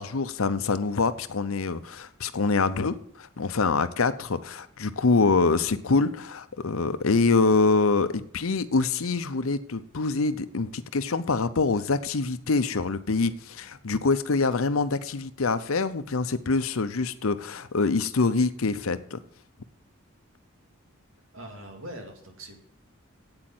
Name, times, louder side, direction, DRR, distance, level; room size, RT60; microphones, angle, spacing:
voice 1, 0.0-19.2, left 4 dB, 80° left, 12 dB, 0.7 m, -25 dB
voice 2, 21.3-22.6, right 1 dB, 70° right, 3 dB, 2.4 m, -42 dB
8.8 x 8.3 x 7.8 m, 0.64 s
head